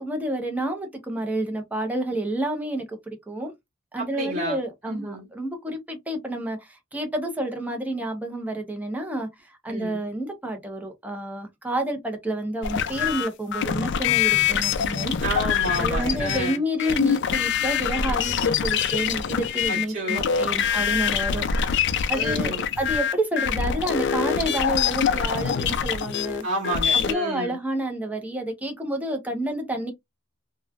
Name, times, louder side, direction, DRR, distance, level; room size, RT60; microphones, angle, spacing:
voice 1, 0.0-3.5 3.9-15.2 15.8-21.8 22.1-26.5 26.9-29.9, right 1 dB, 10° right, 0.7 m, -29 dB
voice 2, 4.0-4.6 4.9-5.3 9.7-10.0 15.2-16.6 19.7-20.2 22.1-22.6 26.4-27.6, right 2 dB, 45° right, 1.5 m, -30 dB
sound 1, 12.6-27.1, left 7 dB, 60° left, 0.4 m, -24 dB
3.0 x 2.2 x 2.3 m
head